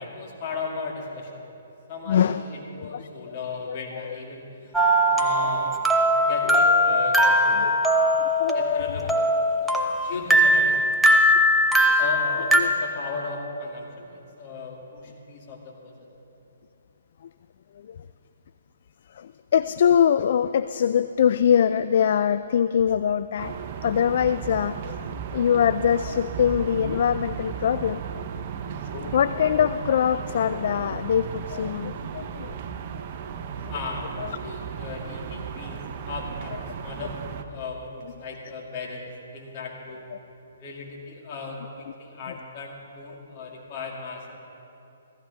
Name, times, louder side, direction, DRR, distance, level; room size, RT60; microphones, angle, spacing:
voice 1, 0.0-1.4 1.9-4.8 5.0-5.8 6.1-7.7 8.5-9.2 9.6-9.8 10.0-10.8 11.0-11.4 11.8-15.9 33.7-40.0 40.6-44.4, left 4 dB, 40° left, -1 dB, 2.4 m, -36 dB
voice 2, 2.1-2.4 2.8-3.1 3.7-4.2 5.5-5.7 7.6-7.7 8.4-8.9 12.5-12.7 17.7-18.0 19.1-23.5 23.8-28.2 28.8-32.6 33.6-33.7 34.2-34.4 36.5-36.6 40.1-40.2 42.3-42.4, left 8 dB, 55° left, 13 dB, 0.3 m, -23 dB
sound 1, 4.7-12.6, equal, ahead, 0.8 m, -20 dB
sound 2, 23.4-37.4, right 8 dB, 40° right, 0.7 m, -35 dB
16.5 x 14.5 x 3.5 m, 2.8 s
hypercardioid pair, 145°, 0 cm